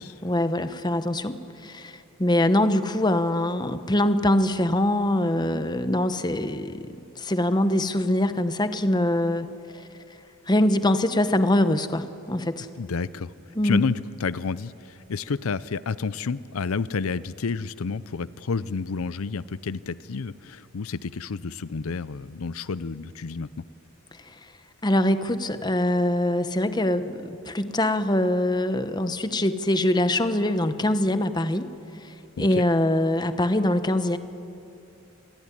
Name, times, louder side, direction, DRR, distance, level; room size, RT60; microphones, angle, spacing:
voice 1, 0.0-9.5 10.5-12.7 13.6-13.8 24.8-31.7 32.0-34.2, left 1 dB, 20° left, 11 dB, 1.0 m, -23 dB
voice 2, 12.8-13.3 13.6-23.5 32.4-32.6, left 5 dB, 80° left, 17 dB, 0.6 m, -30 dB
27.0 x 21.5 x 9.9 m, 2.7 s
head